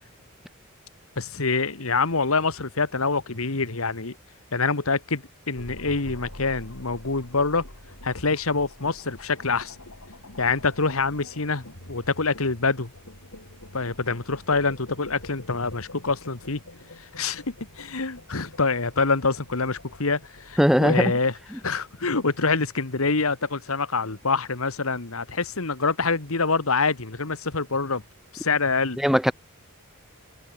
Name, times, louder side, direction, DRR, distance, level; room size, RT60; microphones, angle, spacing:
voice 1, 1.2-4.1 4.5-7.6 8.0-9.8 10.4-12.9 13.7-16.6 17.1-21.3 21.6-28.0 28.3-29.0, left 4 dB, 70° left, 1.7 m, -25 dB
sound 1, 5.6-22.8, left 1 dB, 90° left, 7.9 m, -46 dB
voice 2, 20.6-21.1 29.0-29.3, equal, ahead, 2.0 m, -19 dB
head